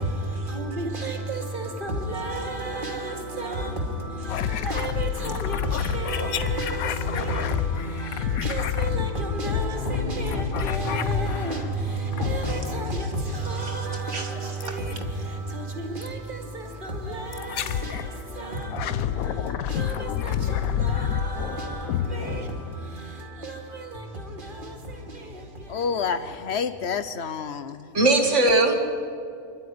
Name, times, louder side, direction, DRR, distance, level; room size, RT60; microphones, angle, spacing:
voice 1, 0.0-26.1, right 1 dB, 35° right, 2.6 m, -31 dB
sound 1, 4.3-11.7 12.1-12.9 14.6-15.0 16.0-16.2 17.3-18.1 18.6-22.9, left 10 dB, 80° left, 1.2 m, -29 dB
voice 2, 25.7-27.9, left 6 dB, 55° left, 1.0 m, -28 dB
voice 3, 27.9-28.7, right 2 dB, 55° right, 2.1 m, -20 dB
26.5 x 12.0 x 9.6 m
omnidirectional pair, 1.5 m